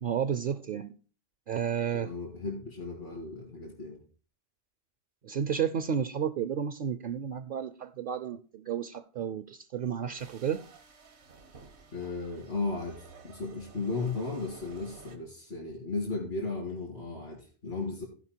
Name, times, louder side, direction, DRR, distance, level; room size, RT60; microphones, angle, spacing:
voice 1, 0.0-0.9 1.5-2.1 5.2-10.6, right 8 dB, 60° right, 0.7 m, -32 dB
voice 2, 1.9-4.0 11.9-18.1, left 3 dB, 80° left, 2.8 m, -35 dB
sound 1, 10.2-15.2, right 4 dB, 85° right, 1.5 m, -52 dB
15.0 x 5.4 x 4.4 m
omnidirectional pair, 1.1 m